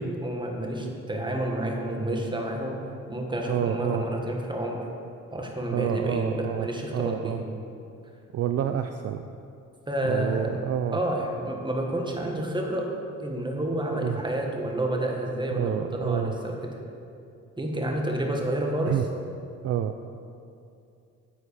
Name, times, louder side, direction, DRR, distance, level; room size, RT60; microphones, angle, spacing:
voice 1, 0.0-2.8 3.1-4.9 5.3-7.5 9.9-12.9 13.2-16.7 17.6-19.0, right 1 dB, 15° right, 1 dB, 1.6 m, -29 dB
voice 2, 3.5-4.0 5.7-7.4 8.3-9.3 10.0-11.0 14.0-14.2 15.5-16.3 18.9-19.1 19.6-19.9, right 10 dB, 55° right, 8 dB, 0.5 m, -28 dB
10.0 x 7.9 x 4.9 m, 2.6 s
cardioid pair, 90°, 30 cm